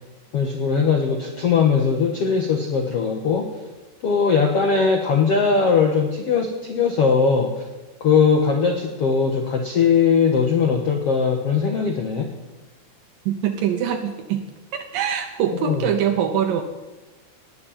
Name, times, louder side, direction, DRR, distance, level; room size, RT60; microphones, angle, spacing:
voice 1, 0.3-3.5 4.0-7.6 8.0-12.3 15.5-15.9, left 5 dB, 80° left, 4 dB, 1.3 m, -20 dB
voice 2, 13.3-14.5 14.7-16.6, right 9 dB, 75° right, 7 dB, 2.1 m, -23 dB
19.0 x 7.7 x 8.8 m, 1.2 s
omnidirectional pair, 4.9 m